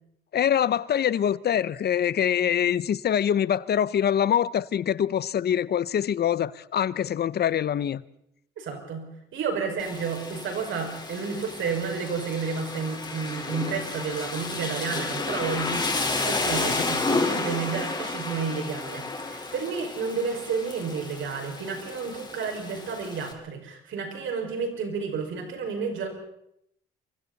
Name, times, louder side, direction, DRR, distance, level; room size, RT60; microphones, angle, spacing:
voice 1, 0.3-8.0 16.8-16.9, left 9 dB, 55° left, 0.8 m, -24 dB
voice 2, 8.6-9.1 9.3-26.1, right 5 dB, 75° right, 5.6 m, -31 dB
Rain, 9.8-23.3, left 3 dB, 20° left, 4.4 m, -31 dB
28.0 x 24.5 x 4.1 m
cardioid pair, 90°, 20 cm